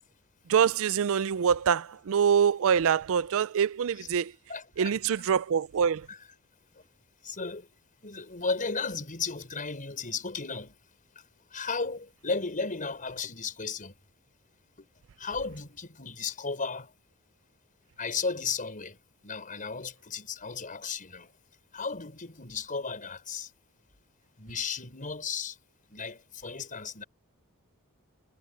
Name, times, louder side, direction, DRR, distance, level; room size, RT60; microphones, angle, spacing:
voice 1, 0.5-4.3 4.8-6.0, right 7 dB, 65° right, 0.4 m, -25 dB
voice 2, 4.5-4.9 6.1-6.2 7.2-7.7 8.0-10.8 11.5-14.0 14.8-14.9 15.2-16.9 18.0-19.0 19.2-21.3 21.7-23.5 24.4-25.6 25.9-27.0, left 4 dB, 40° left, 5.5 m, -34 dB
head